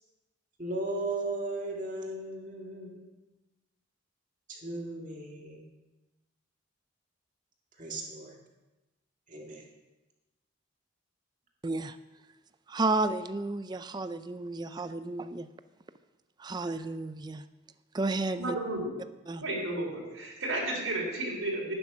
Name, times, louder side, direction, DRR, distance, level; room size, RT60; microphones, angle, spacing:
voice 1, 0.6-3.1 4.5-5.6 7.8-8.3 9.3-9.6, right 2 dB, 40° right, 2.1 m, -36 dB
voice 2, 11.6-12.0 12.7-15.5 16.4-17.4 17.9-18.6 19.3-19.4, right 2 dB, 20° right, 0.4 m, -32 dB
voice 3, 18.4-18.9 19.4-21.7, right 1 dB, 85° right, 3.9 m, -32 dB
11.5 x 9.9 x 6.1 m
head